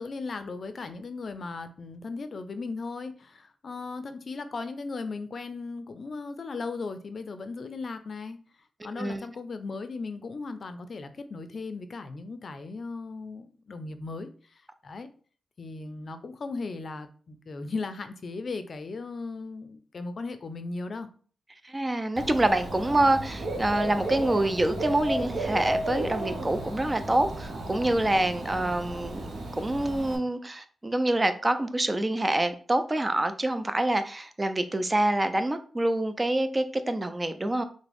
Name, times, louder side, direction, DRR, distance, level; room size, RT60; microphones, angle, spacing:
voice 1, 0.0-8.4 8.8-15.1 15.6-21.1, left 3 dB, 60° left, 10 dB, 0.4 m, -37 dB
voice 2, 8.8-9.2 21.6-29.3 29.6-37.6, right 1 dB, 25° right, 9 dB, 0.4 m, -26 dB
Dog / Bird, 22.2-30.2, right 1 dB, 70° right, 0.8 m, -34 dB
3.4 x 2.1 x 3.4 m, 0.42 s
cardioid pair, 55°, 0 cm